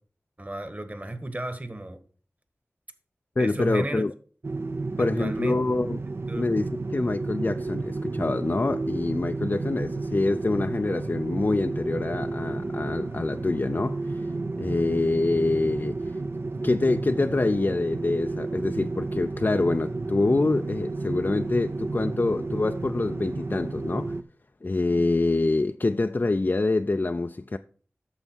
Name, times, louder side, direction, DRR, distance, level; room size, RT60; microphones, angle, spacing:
voice 1, 0.4-2.0 3.4-4.0 5.0-5.7 6.3-6.5, right 2 dB, 35° right, 1.5 m, -33 dB
voice 2, 3.4-4.1 5.0-6.0 6.4-14.3 14.6-16.2 16.6-24.1 24.6-27.6, left 2 dB, 40° left, 0.4 m, -26 dB
sound 1, 4.4-24.2, right 3 dB, 50° right, 0.6 m, -32 dB
8.9 x 6.6 x 4.5 m
wide cardioid pair, 45°, 5 cm